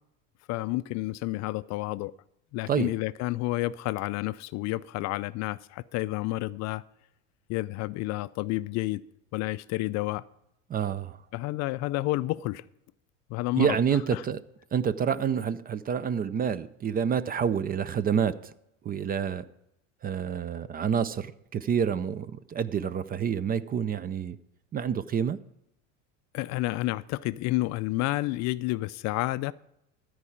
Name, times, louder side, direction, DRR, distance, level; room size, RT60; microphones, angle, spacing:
voice 1, 0.5-2.1 2.5-6.8 7.5-9.0 9.3-10.2 11.3-12.6 13.3-13.8 14.1-14.2 26.3-29.5, left 19 dB, 45° left, 0.4 m, -30 dB
voice 2, 10.7-11.2 13.5-14.4 14.7-18.5 18.8-19.5 20.0-24.4 24.7-25.4, right 7 dB, 25° right, 0.4 m, -28 dB
13.5 x 4.7 x 8.7 m
hypercardioid pair, 85°, 38 cm